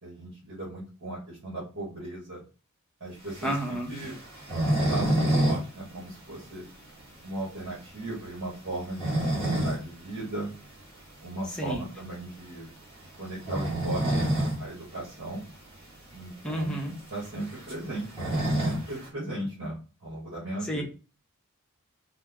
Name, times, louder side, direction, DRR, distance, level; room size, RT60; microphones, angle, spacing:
voice 1, 0.0-2.4 3.0-4.2 4.9-6.6 7.2-10.5 11.2-12.7 13.2-15.4 16.1-16.8 17.1-20.8, right 2 dB, 60° right, -6 dB, 1.3 m, -37 dB
sound 1, 3.3-5.6 5.9-6.0 6.4-6.5 7.0-7.1 8.7-9.8 10.2-10.4 11.9-12.1 13.3-14.6 15.0-15.1 15.3-15.4 16.1-16.2 16.5-19.1, right 1 dB, 25° right, 1.4 m, -27 dB
voice 2, 3.4-3.9 11.6-11.8 16.4-16.9 20.7-20.8, right 1 dB, 5° left, -1 dB, 0.7 m, -30 dB
3.3 x 2.0 x 3.4 m, 0.35 s
head